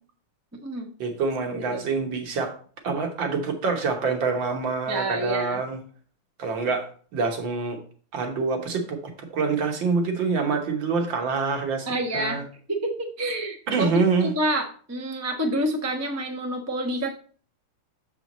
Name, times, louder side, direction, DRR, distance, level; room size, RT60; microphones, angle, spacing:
voice 1, 1.0-2.5 2.8-5.8 6.4-7.8 8.1-11.9 12.1-12.4 13.7-14.3, right 4 dB, 65° right, 4 dB, 1.9 m, -26 dB
voice 2, 1.5-1.8 4.9-5.6 11.9-12.4 12.7-17.1, right 1 dB, 20° right, 2 dB, 0.4 m, -28 dB
7.1 x 6.1 x 4.0 m, 0.43 s
omnidirectional pair, 2.4 m